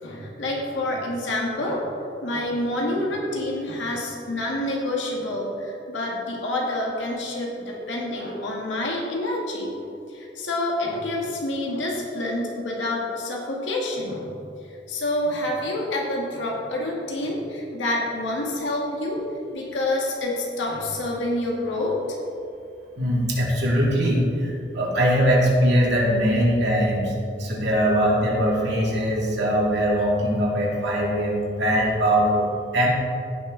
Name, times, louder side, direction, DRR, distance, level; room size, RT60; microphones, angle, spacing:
voice 1, 0.0-9.7 10.1-14.3 14.9-19.2 19.5-22.0, left 1 dB, 80° left, -2 dB, 1.8 m, -27 dB
voice 2, 23.0-32.9, equal, 65° right, -3 dB, 2.5 m, -21 dB
16.0 x 6.1 x 3.9 m, 2.6 s
head